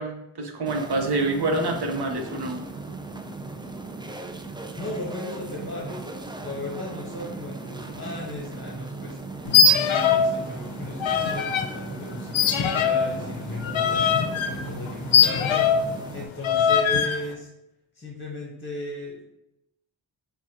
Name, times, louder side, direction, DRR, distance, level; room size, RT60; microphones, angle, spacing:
voice 1, 0.0-2.6, right 2 dB, 55° right, 2 dB, 0.9 m, -27 dB
sound 1, 0.7-16.3, right 3 dB, 10° right, 0.3 m, -37 dB
voice 2, 4.8-9.2 9.6-17.5 17.9-19.2, left 1 dB, 25° left, -3 dB, 1.0 m, -36 dB
sound 2, 9.4-10.3 10.6-11.7 12.3-15.9 16.4-17.2, left 6 dB, 80° left, 0.5 m, -21 dB
6.0 x 2.3 x 2.8 m, 0.88 s
wide cardioid pair, 65°, 47 cm